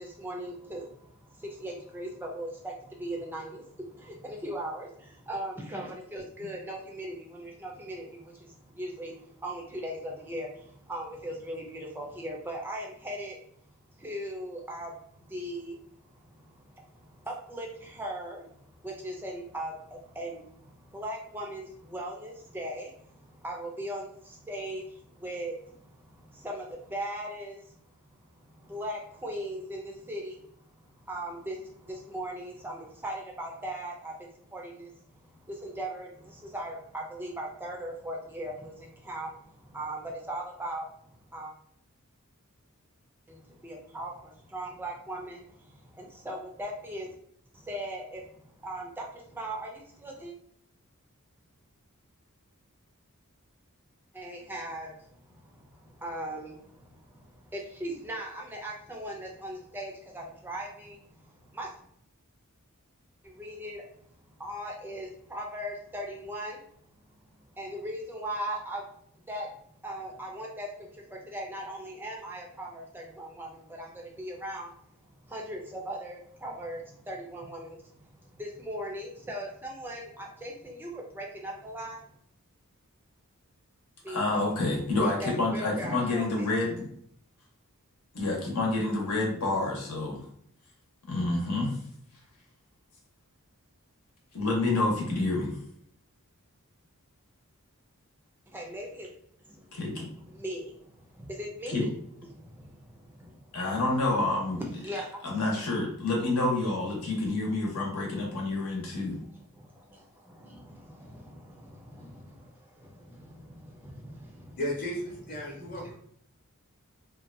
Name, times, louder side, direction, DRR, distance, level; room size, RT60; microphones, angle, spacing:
voice 1, 0.0-13.4 13.9-41.5 43.3-47.1 47.5-50.3 54.1-61.9 63.2-63.8 64.2-66.6 66.9-68.9 69.3-69.5 69.8-82.1 84.0-84.6 84.9-86.5 98.5-99.1 99.4-99.7 100.2-101.9 102.3-103.8 104.8-105.2 108.9-114.6, right 1 dB, 10° right, -1 dB, 0.4 m, -39 dB
voice 2, 84.1-86.9 88.1-90.3 91.1-91.8 94.3-95.5 99.7-100.1 101.7-101.9 103.5-104.6 105.2-109.2, left 2 dB, 85° left, -2 dB, 0.9 m, -28 dB
voice 3, 114.6-115.9, equal, 40° left, -2 dB, 0.8 m, -34 dB
2.6 x 2.2 x 2.5 m, 0.66 s
head